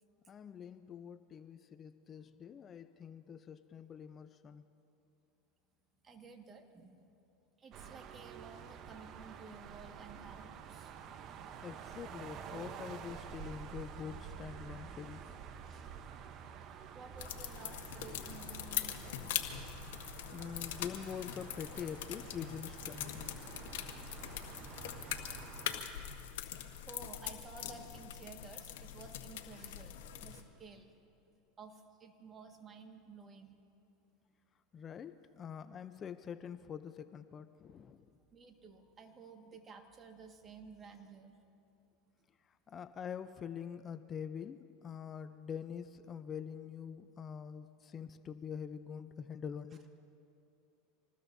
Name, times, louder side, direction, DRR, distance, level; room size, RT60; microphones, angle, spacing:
voice 1, 0.3-4.6 11.6-15.2 20.3-23.9 24.3-24.5 34.7-38.1 42.7-49.8, left 7 dB, 30° left, 11 dB, 0.5 m, -45 dB
voice 2, 6.0-7.1 7.6-11.0 15.7-16.0 16.6-19.2 26.5-30.9 31.6-33.6 38.3-41.4, right 4 dB, 30° right, 4 dB, 1.8 m, -54 dB
sound 1, 7.7-25.8, right 7 dB, 45° right, 0.9 m, -49 dB
sound 2, 17.2-30.4, left 10 dB, 75° left, 1.3 m, -42 dB
26.5 x 19.5 x 2.7 m, 2.7 s
hypercardioid pair, 105°, 0 cm